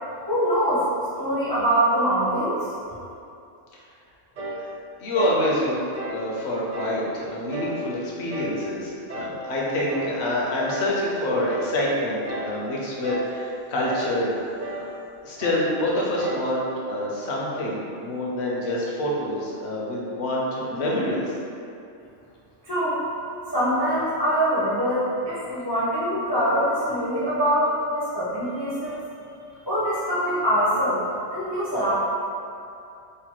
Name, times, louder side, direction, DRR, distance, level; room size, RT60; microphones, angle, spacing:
voice 1, 0.3-0.8 1.2-2.6 22.6-23.0 23.5-29.0 29.7-31.0 31.3-31.9, equal, 40° left, -10 dB, 0.3 m, -23 dB
sound 1, 4.4-4.7 5.1-5.4 5.9-6.2 6.7-7.0 7.5-7.8 8.3-8.6 9.1-9.4 9.9-10.2 10.7-11.0 11.5-11.8 12.2-12.6 13.0-13.4 13.8-14.1 14.6-14.9 15.4-15.7 16.2-16.5, right 1 dB, 50° right, 0.6 m, -34 dB
voice 2, 5.0-5.8 6.1-14.4 14.7-14.8 15.2-21.2, left 1 dB, 65° left, -4 dB, 0.8 m, -26 dB
3.2 x 2.2 x 2.9 m, 2.6 s
omnidirectional pair, 1.3 m